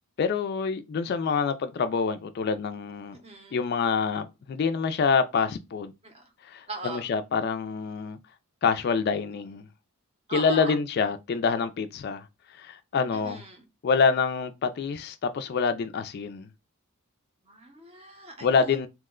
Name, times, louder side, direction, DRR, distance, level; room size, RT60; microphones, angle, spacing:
voice 1, 0.2-3.2 3.5-5.9 6.4-8.2 8.6-9.6 10.3-12.2 12.6-13.4 13.8-16.5 18.4-18.9, left 5 dB, 45° left, 0.3 m, -26 dB
voice 2, 3.1-3.6 6.0-6.3 6.7-7.1 10.3-10.8 13.1-13.7 17.4-18.9, right 2 dB, 25° right, 0.6 m, -40 dB
3.0 x 2.1 x 3.6 m
head